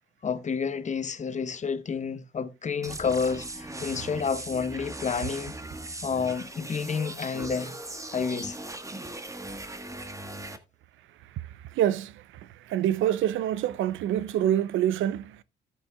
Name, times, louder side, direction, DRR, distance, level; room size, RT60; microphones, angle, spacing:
voice 1, 0.2-5.5 6.0-7.8 8.1-8.6, left 5 dB, 35° left, 0.9 m, -30 dB
sound 1, 2.8-10.6, right 2 dB, 15° right, 1.3 m, -39 dB
voice 2, 11.7-12.2 12.6-15.4, right 11 dB, 80° right, 0.6 m, -26 dB
14.5 x 8.3 x 2.3 m
cardioid pair, 90°, 20 cm